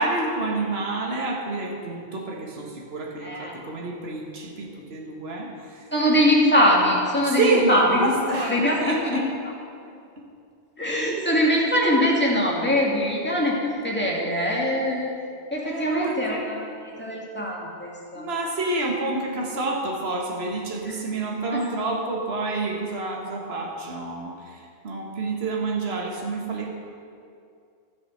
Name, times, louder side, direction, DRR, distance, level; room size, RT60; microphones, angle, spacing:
voice 1, 0.0-5.9 7.2-9.3 15.6-16.2 18.2-26.7, right 2 dB, 60° right, -1 dB, 1.7 m, -28 dB
voice 2, 3.2-3.5 5.9-8.8 9.1-9.2 10.8-15.1 15.5-18.3 20.9-21.0, equal, 10° left, -4 dB, 2.2 m, -22 dB
12.5 x 8.3 x 6.5 m, 2.4 s
omnidirectional pair, 1.2 m